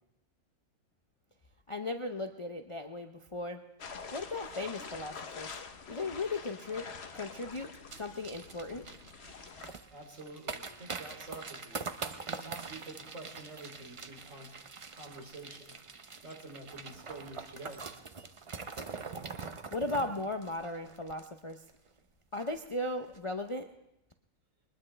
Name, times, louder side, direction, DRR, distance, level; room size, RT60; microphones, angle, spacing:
voice 1, 1.7-3.6 4.1-5.6 5.9-6.9 7.1-7.7 8.0-8.9 19.7-21.6 22.3-23.7, left 2 dB, 35° left, 5 dB, 0.5 m, -36 dB
sound 1, 3.8-9.7, left 5 dB, 50° left, 1.2 m, -46 dB
sound 2, 7.9-21.7 22.0-22.1 22.3-22.7 23.0-23.2, right 4 dB, 35° right, 0.5 m, -44 dB
voice 2, 9.9-11.9 12.2-14.5 14.9-15.8 16.2-17.9, right 2 dB, 65° right, 1 dB, 3.5 m, -48 dB
21.5 x 20.0 x 3.3 m, 0.85 s
omnidirectional pair, 1.4 m